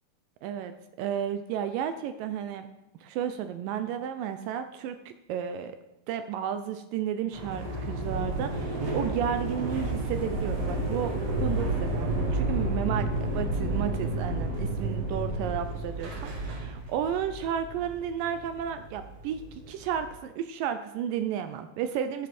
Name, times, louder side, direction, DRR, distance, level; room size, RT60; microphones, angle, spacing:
voice 1, 0.4-2.7 3.0-5.8 6.1-22.3, right 9 dB, 80° right, 9 dB, 2.1 m, -33 dB
sound 1, 7.3-20.1, right 2 dB, 50° right, 2.7 m, -31 dB
11.5 x 10.0 x 4.2 m, 0.89 s
omnidirectional pair, 4.2 m